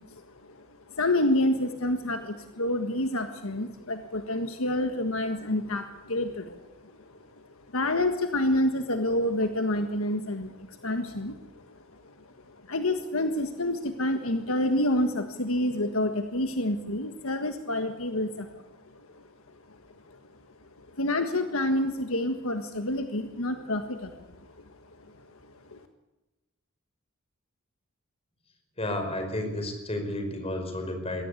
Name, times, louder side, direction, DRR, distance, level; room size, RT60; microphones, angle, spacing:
voice 1, 0.0-25.9, left 1 dB, 75° left, 7 dB, 1.6 m, -29 dB
voice 2, 28.8-31.2, left 1 dB, 30° left, 5 dB, 5.2 m, -32 dB
22.5 x 17.0 x 8.5 m, 1.1 s
head